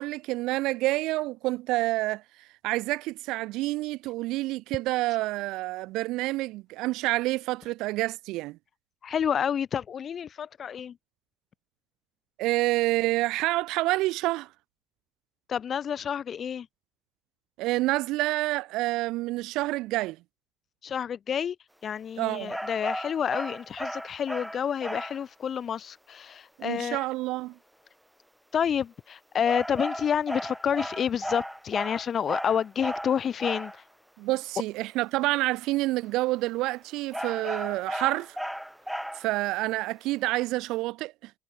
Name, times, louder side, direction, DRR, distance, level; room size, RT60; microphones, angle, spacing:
voice 1, 0.0-2.2 2.6-8.6 12.4-14.5 17.6-20.2 22.2-22.5 26.6-27.5 34.2-38.4 39.2-41.3, right 19 dB, 60° right, 1.0 m, -28 dB
voice 2, 9.0-10.9 15.5-16.7 20.8-21.5 21.8-27.0 28.5-33.7, left 8 dB, 40° left, 1.0 m, -29 dB
sound 1, 22.5-25.2 29.5-33.8 37.1-39.4, equal, ahead, 4.3 m, -35 dB
figure-of-eight pair, 55°, 0 cm